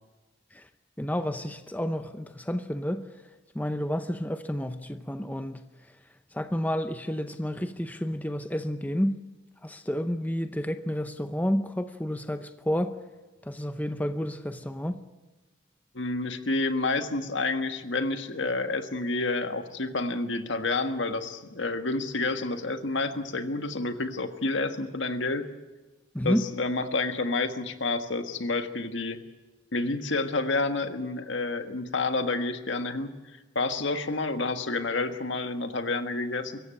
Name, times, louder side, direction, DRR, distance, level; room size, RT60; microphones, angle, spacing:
voice 1, 1.0-3.0 3.5-5.6 6.3-9.2 9.6-12.9 13.4-15.0 26.1-26.4, equal, 10° left, 0.7 m, -30 dB
voice 2, 15.9-25.5 26.2-29.2 29.7-33.1 33.5-36.6, left 3 dB, 70° left, 1.5 m, -29 dB
24.5 x 15.0 x 9.0 m
head